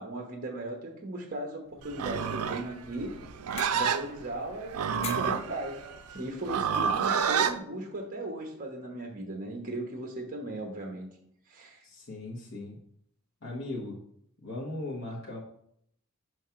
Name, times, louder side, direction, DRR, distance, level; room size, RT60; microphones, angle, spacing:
voice 1, 0.0-3.1 3.7-5.8 6.1-11.1 11.5-11.8, right 1 dB, 40° right, 2 dB, 0.9 m, -37 dB
sound 1, 1.6-7.0, left 6 dB, 30° left, 0.4 m, -48 dB
Livestock farm animals working animals, 1.9-7.6, right 7 dB, 85° right, 0.4 m, -29 dB
voice 2, 11.8-12.8 13.4-14.0 14.4-15.4, left 2 dB, 65° left, -5 dB, 1.1 m, -38 dB
5.7 x 3.2 x 5.7 m, 0.71 s
head